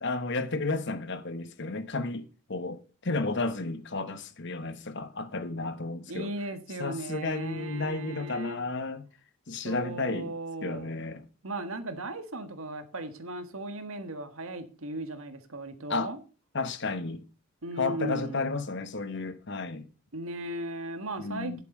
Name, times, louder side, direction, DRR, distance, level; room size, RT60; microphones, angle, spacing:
voice 1, 0.0-6.3 6.8-9.0 9.5-10.3 10.6-11.2 15.9-16.1 16.5-17.3 17.8-19.8 21.2-21.6, left 3 dB, 50° left, 1.1 m, -32 dB
voice 2, 6.1-8.6 9.6-10.9 11.4-16.2 17.6-18.5 20.1-21.6, right 1 dB, 70° right, 1.6 m, -37 dB
11.0 x 8.1 x 5.4 m
head